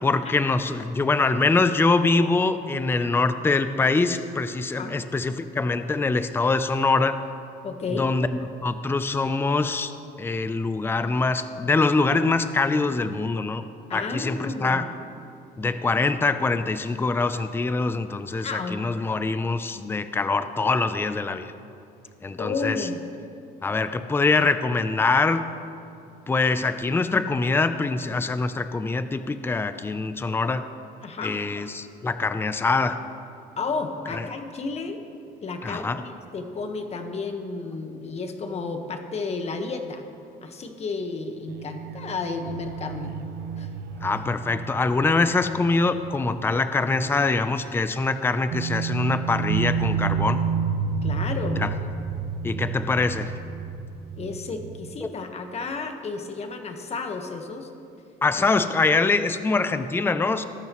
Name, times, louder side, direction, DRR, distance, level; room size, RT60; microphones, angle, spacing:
voice 1, 0.0-7.2 8.0-9.9 10.2-13.6 13.9-14.8 15.6-21.5 22.2-22.9 23.6-25.4 26.3-30.7 31.2-33.0 34.1-34.3 35.6-36.0 44.0-50.4 51.6-51.7 52.4-53.3 58.2-60.5, left 3 dB, 15° left, 11 dB, 0.5 m, -24 dB
voice 2, 7.6-8.1 13.9-14.9 18.4-18.8 22.4-23.0 31.0-31.4 33.6-35.0 35.4-40.0 40.4-43.1 43.6-43.7 51.0-51.7 54.2-57.7 58.4-58.5, left 4 dB, 40° left, 5 dB, 1.4 m, -32 dB
sound 1, 41.5-46.9 47.2-47.3 48.5-55.1, right 6 dB, 80° right, 0.6 m, -30 dB
19.0 x 12.0 x 3.1 m, 2.6 s
cardioid pair, 110°, 17 cm